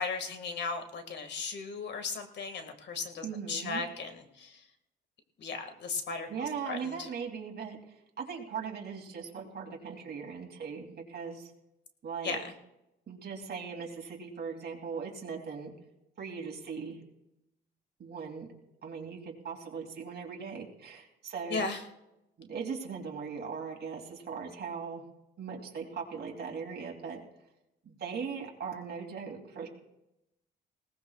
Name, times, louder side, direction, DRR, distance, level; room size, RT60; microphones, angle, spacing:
voice 1, 0.0-4.6 5.4-6.3 6.6-7.1 12.2-12.5 21.5-21.8, left 4 dB, 60° left, 6 dB, 2.1 m, -36 dB
voice 2, 3.2-3.8 6.3-7.8 8.2-11.5 12.0-12.4 13.1-15.7 16.2-17.0 18.0-18.5 18.8-21.7 22.4-25.0 25.4-27.2 27.8-29.7, right 6 dB, 55° right, 1 dB, 2.9 m, -39 dB
20.5 x 18.0 x 2.4 m, 0.90 s
cardioid pair, 90°, 20 cm